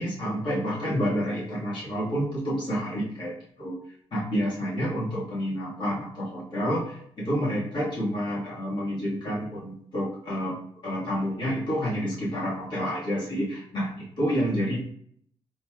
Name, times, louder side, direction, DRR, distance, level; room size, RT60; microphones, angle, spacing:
voice 1, 0.0-3.8 4.1-10.6 10.8-14.8, equal, 45° left, -7 dB, 1.5 m, -29 dB
4.4 x 3.2 x 2.3 m, 0.65 s
cardioid pair, 140°, 11 cm